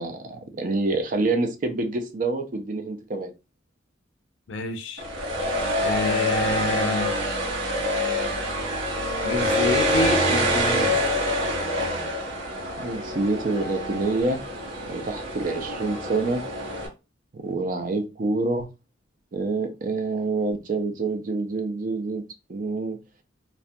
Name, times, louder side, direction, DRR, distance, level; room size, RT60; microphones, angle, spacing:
voice 1, 0.0-3.3 12.8-14.4 14.9-16.4 17.3-18.7 19.3-23.0, right 3 dB, 45° right, 0.4 m, -27 dB
voice 2, 4.5-5.0 5.8-7.1 9.2-11.0, left 2 dB, 80° left, 0.4 m, -28 dB
sound 1, 5.0-16.9, equal, 80° right, 0.7 m, -26 dB
2.3 x 2.1 x 2.6 m
head